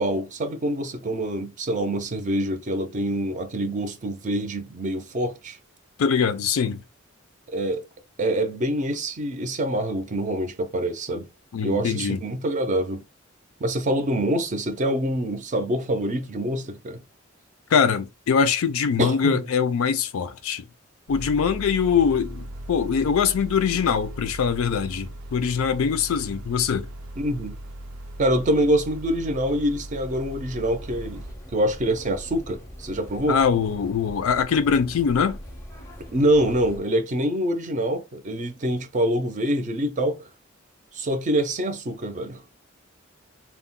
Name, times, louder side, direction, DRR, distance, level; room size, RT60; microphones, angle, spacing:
voice 1, 0.0-5.6 7.5-7.8 8.2-11.3 11.6-13.0 13.6-17.0 19.0-19.4 27.2-27.6 28.2-31.2 31.5-33.4 36.1-40.3 40.9-42.4, right 1 dB, 35° right, 0.5 m, -25 dB
voice 2, 6.0-6.8 11.5-12.2 17.7-20.6 21.1-26.9 33.3-35.4, left 6 dB, 80° left, 0.4 m, -23 dB
sound 1, 21.1-31.3, right 1 dB, 90° right, 0.4 m, -38 dB
sound 2, 30.8-36.8, equal, 15° left, 0.5 m, -41 dB
2.2 x 2.1 x 3.6 m
head